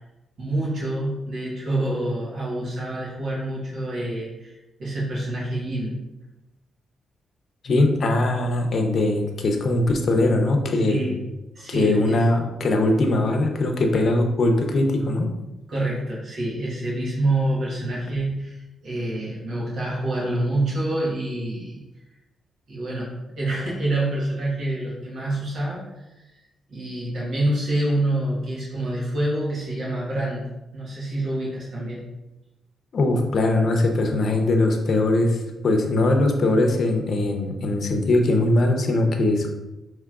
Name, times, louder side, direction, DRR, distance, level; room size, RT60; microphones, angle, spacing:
voice 1, 0.4-5.9 10.9-11.2 11.5-12.3 15.7-21.8 22.7-23.1 23.4-25.8 26.1-26.2 26.7-30.4 30.7-32.0, right 1 dB, 65° right, -6 dB, 1.3 m, -27 dB
voice 2, 7.6-11.1 11.7-15.3 32.9-39.5, left 2 dB, 60° left, 3 dB, 0.7 m, -21 dB
5.7 x 3.0 x 2.4 m, 1.0 s
cardioid pair, 90°, 0 cm